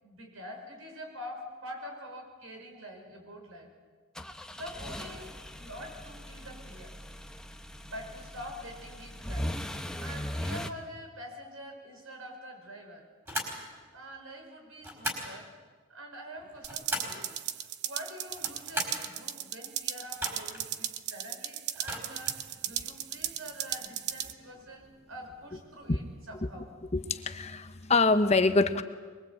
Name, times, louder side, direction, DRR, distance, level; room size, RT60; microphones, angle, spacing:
voice 1, 0.0-3.7 4.5-6.9 7.8-13.1 13.9-15.5 15.9-17.3 17.8-26.7, equal, 75° right, 3 dB, 5.8 m, -45 dB
sound 1, 4.1-10.7, equal, 5° left, 0.9 m, -39 dB
sound 2, 13.3-13.6 14.8-15.3 16.4-17.2 18.3-19.1 20.1-20.7 21.8-22.4, equal, 10° right, 4.8 m, -37 dB
sound 3, 16.6-24.3, right 11 dB, 55° right, 0.9 m, -36 dB
voice 2, 26.9-28.8, left 3 dB, 30° left, 9 dB, 1.0 m, -25 dB
24.0 x 22.0 x 8.6 m, 1.5 s
head